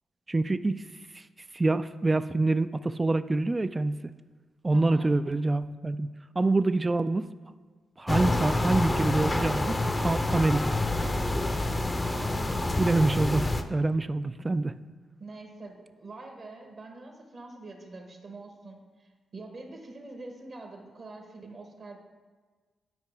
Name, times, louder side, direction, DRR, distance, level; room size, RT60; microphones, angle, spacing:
voice 1, 0.3-0.9 1.1-1.2 1.5-3.9 4.6-6.1 6.4-7.3 8.0-10.7 12.8-14.7, right 2 dB, 30° right, 12 dB, 0.3 m, -26 dB
voice 2, 4.7-5.2 12.0-12.8 15.2-22.0, right 2 dB, 55° right, 3 dB, 1.2 m, -44 dB
sound 1, 8.1-13.6, left 2 dB, 25° left, 0.6 m, -27 dB
9.3 x 4.8 x 3.5 m, 1.4 s
supercardioid pair, 50°, 0 cm